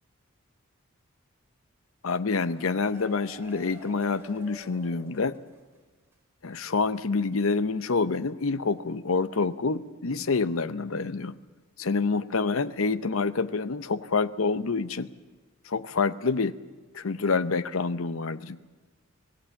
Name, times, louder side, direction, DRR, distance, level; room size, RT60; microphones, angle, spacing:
voice 1, 2.0-5.4 6.4-11.3 11.8-15.1 15.7-16.6 16.9-18.6, left 4 dB, 75° left, 14 dB, 0.7 m, -27 dB
sound 1, 2.1-5.8 6.1-6.2 6.5-6.6, right 1 dB, 10° right, 3.8 m, -50 dB
25.5 x 18.0 x 7.1 m, 1.3 s
head